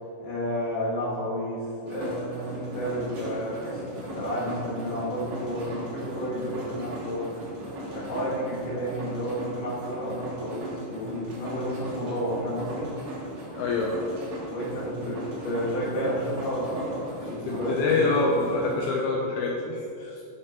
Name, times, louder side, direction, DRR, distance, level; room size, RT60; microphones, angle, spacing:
voice 1, 0.2-7.4 7.9-12.9 14.5-18.2, equal, 65° left, -8 dB, 4.2 m, -31 dB
sound 1, 1.9-18.7, right 1 dB, 55° right, 1.5 m, -38 dB
voice 2, 13.5-14.0 17.5-20.2, left 3 dB, 90° left, -1 dB, 2.2 m, -26 dB
12.0 x 6.7 x 2.9 m, 2.5 s
omnidirectional pair, 5.2 m